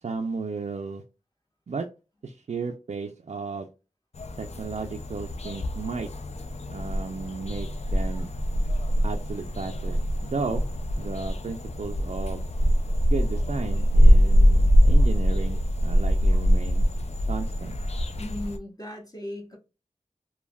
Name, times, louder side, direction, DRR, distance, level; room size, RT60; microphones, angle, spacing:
voice 1, 0.0-1.0 1.7-1.9 2.2-3.7 4.4-6.1 6.7-8.3 9.0-10.7 11.0-12.4 13.1-16.9 17.3-17.7, right 4 dB, 60° right, 3 dB, 0.4 m, -34 dB
sound 1, 4.1-18.6, equal, 55° left, 0.4 m, -23 dB
voice 2, 18.2-19.6, left 1 dB, 30° left, -1 dB, 0.9 m, -37 dB
3.3 x 2.2 x 2.2 m, 0.30 s
wide cardioid pair, 45°, 13 cm